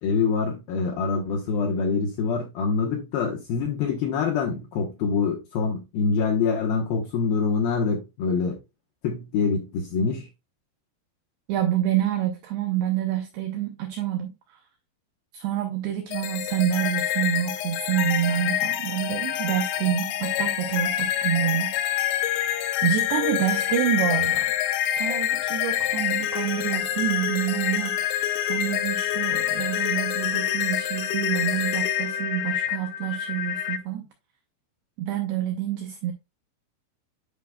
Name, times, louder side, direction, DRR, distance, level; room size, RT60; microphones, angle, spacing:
voice 1, 0.0-8.6 9.0-10.3, left 5 dB, 75° left, 2.3 m, -25 dB
voice 2, 11.5-14.6 15.3-22.4 22.8-24.5 24.9-34.1 35.0-36.1, right 11 dB, 85° right, 2.3 m, -27 dB
sound 1, 16.1-33.8, left 12 dB, 90° left, 2.2 m, -26 dB
10.5 x 5.1 x 2.2 m
omnidirectional pair, 5.6 m